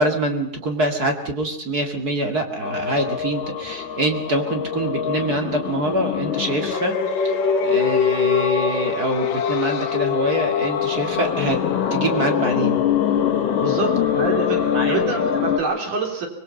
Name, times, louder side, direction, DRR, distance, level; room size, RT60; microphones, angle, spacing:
voice 1, 0.0-7.3 7.6-11.6 11.9-12.8 14.7-15.0, right 1 dB, 35° right, 3 dB, 2.3 m, -25 dB
sound 1, 2.6-15.6, left 7 dB, 90° left, 3.2 m, -23 dB
voice 2, 13.6-16.3, right 4 dB, 75° right, 2 dB, 5.2 m, -26 dB
25.5 x 21.0 x 5.4 m, 0.67 s
omnidirectional pair, 3.6 m